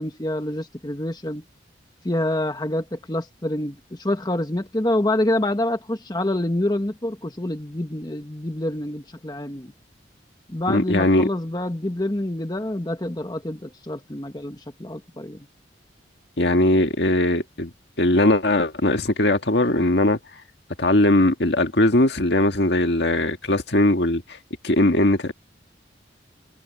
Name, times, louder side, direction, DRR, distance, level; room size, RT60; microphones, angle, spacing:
voice 1, 0.0-1.4 2.0-9.7 10.5-15.4, left 1 dB, 20° left, 1.2 m, -27 dB
voice 2, 10.7-11.3 16.4-17.7 18.0-20.2 20.8-24.4 24.6-25.3, left 1 dB, 70° left, 1.8 m, -19 dB
head